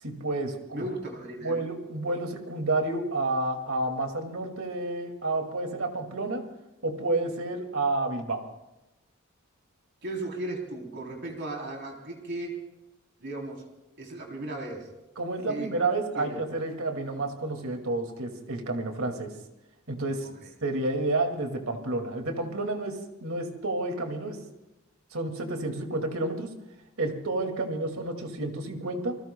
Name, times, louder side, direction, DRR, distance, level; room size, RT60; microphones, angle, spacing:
voice 1, 0.0-0.9 1.4-6.5 6.8-8.5 15.2-19.3 19.9-20.3 20.6-24.4 25.1-26.5 27.0-29.2, right 2 dB, 80° right, 4 dB, 2.3 m, -30 dB
voice 2, 0.7-1.6 10.0-12.6 13.2-13.7 14.0-14.9 15.5-15.7 16.1-16.4 20.2-20.5, right 2 dB, 55° right, 0 dB, 3.4 m, -36 dB
28.5 x 20.5 x 2.3 m, 0.96 s
head